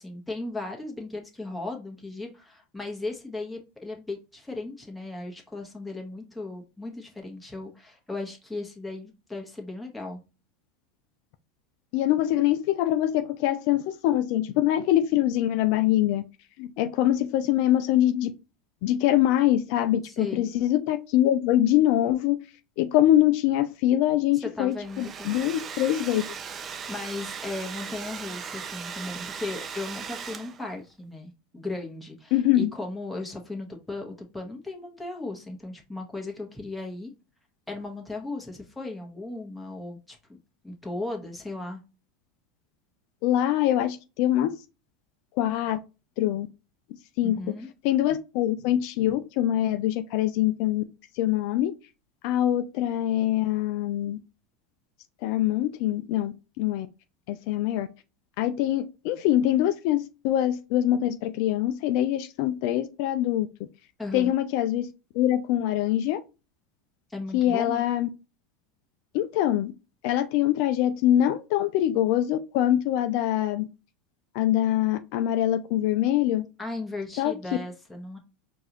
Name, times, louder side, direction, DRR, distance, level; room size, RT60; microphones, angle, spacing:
voice 1, 0.0-10.2 20.0-20.5 24.4-25.3 26.9-37.1 37.7-40.4 40.6-41.8 47.2-47.7 64.0-64.3 67.1-67.8 76.6-78.2, left 2 dB, 5° left, 0 dB, 1.3 m, -36 dB
voice 2, 11.9-16.2 16.6-18.3 18.8-22.4 22.8-26.2 32.3-32.7 43.2-44.5 45.4-45.8 46.2-46.5 47.2-47.4 47.8-50.8 51.2-51.7 52.2-54.2 55.2-56.9 57.3-57.9 58.4-63.5 64.1-64.9 65.2-66.2 67.3-68.1 69.1-69.7 70.0-73.7 74.3-76.4 77.2-77.3, left 12 dB, 65° left, 9 dB, 0.4 m, -24 dB
Domestic sounds home sounds, 24.7-30.8, right 6 dB, 30° right, 0.4 m, -38 dB
4.6 x 2.6 x 3.0 m, 0.29 s
supercardioid pair, 110°, 0 cm